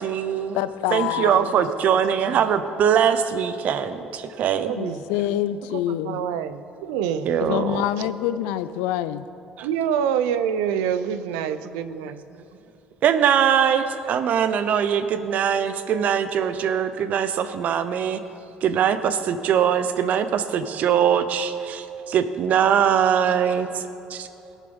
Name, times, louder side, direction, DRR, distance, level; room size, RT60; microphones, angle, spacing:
voice 1, 0.0-0.6 0.9-4.7 7.2-7.8 9.6-9.7 13.0-18.2 18.6-23.8 24.1-24.3, right 8 dB, 60° right, 11 dB, 0.8 m, -22 dB
voice 2, 0.5-1.6 4.8-6.2 7.4-9.3, left 12 dB, 85° left, 14 dB, 0.5 m, -26 dB
voice 3, 4.6-5.0 6.0-7.3 9.6-12.2, right 8 dB, 90° right, 11 dB, 0.6 m, -26 dB
18.5 x 7.4 x 5.4 m, 2.9 s
supercardioid pair, 85°, 3 cm